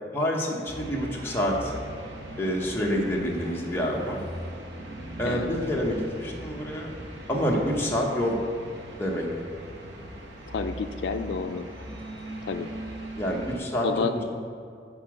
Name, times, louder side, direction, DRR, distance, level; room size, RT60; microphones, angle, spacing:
voice 1, 0.1-1.7 2.4-4.2 5.2-6.9 7.3-8.4 9.0-9.3 13.2-13.9, equal, 15° left, -2 dB, 0.9 m, -27 dB
sound 1, 0.7-13.6, right 1 dB, 85° right, 0.9 m, -40 dB
voice 2, 3.0-3.4 5.2-5.5 10.5-11.7 12.4-12.7 13.8-14.1, left 4 dB, 80° left, 8 dB, 0.4 m, -30 dB
6.6 x 4.6 x 6.1 m, 2.4 s
head